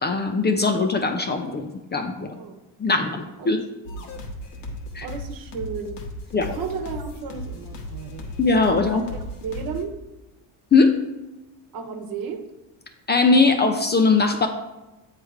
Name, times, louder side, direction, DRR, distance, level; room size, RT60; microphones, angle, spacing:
voice 1, 0.0-2.4 2.8-3.6 4.9-5.1 6.3-6.5 8.4-9.0 10.7-11.1 13.1-14.5, left 4 dB, 25° left, 5 dB, 0.5 m, -20 dB
voice 2, 3.4-4.1 5.0-6.0 6.5-8.3 8.9-10.0 11.7-12.5, right 5 dB, 55° right, 4 dB, 1.1 m, -34 dB
sound 1, 3.9-9.8, left 1 dB, 75° left, 1.3 m, -36 dB
7.7 x 3.2 x 4.9 m, 1.0 s
supercardioid pair, 100°, 43 cm